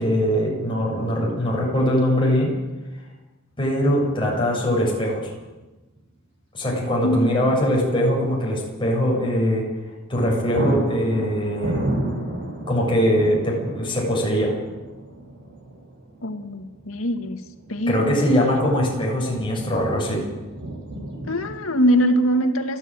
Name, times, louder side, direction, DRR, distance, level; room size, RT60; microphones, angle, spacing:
voice 1, 0.0-2.5 3.6-5.3 6.5-9.6 10.1-11.9 12.7-14.5 17.9-20.2, equal, 25° left, -2 dB, 7.6 m, -21 dB
sound 1, 5.5-5.7 6.0-6.1 9.7-10.0 10.2-21.6, right 1 dB, 60° right, 6.1 m, -33 dB
voice 2, 16.2-17.4 17.7-18.2 21.2-22.8, equal, 85° left, 6 dB, 2.0 m, -22 dB
29.0 x 10.5 x 9.2 m, 1.2 s
head